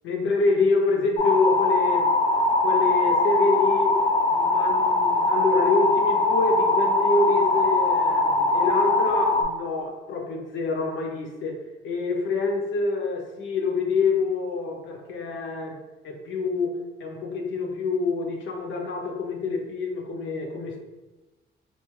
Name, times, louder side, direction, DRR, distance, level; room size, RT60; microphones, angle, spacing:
voice 1, 0.0-2.1 2.6-4.0 4.3-20.8, left 3 dB, 75° left, 2 dB, 0.6 m, -26 dB
sound 1, 1.2-9.4, left 2 dB, 30° left, 0.4 m, -22 dB
2.7 x 2.2 x 3.1 m, 1.1 s
cardioid pair, 90°, 20 cm